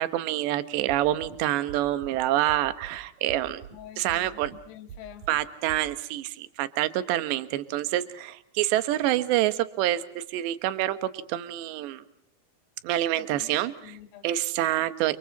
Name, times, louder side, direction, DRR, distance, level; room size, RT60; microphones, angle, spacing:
voice 1, 0.0-3.6 4.0-4.5 5.3-12.0 12.8-13.7 14.2-15.2, right 14 dB, 70° right, 12 dB, 3.1 m, -27 dB
sound 1, 0.9-1.4 1.7-2.2 2.5-3.0 3.3-3.8 4.1-4.6 4.9-5.4 5.7-5.8, right 8 dB, 45° right, 3.1 m, -43 dB
voice 2, 3.7-5.3 13.1-14.3 14.8-14.9, left 11 dB, 75° left, 8 dB, 4.7 m, -47 dB
29.5 x 27.5 x 4.2 m, 0.68 s
omnidirectional pair, 6.0 m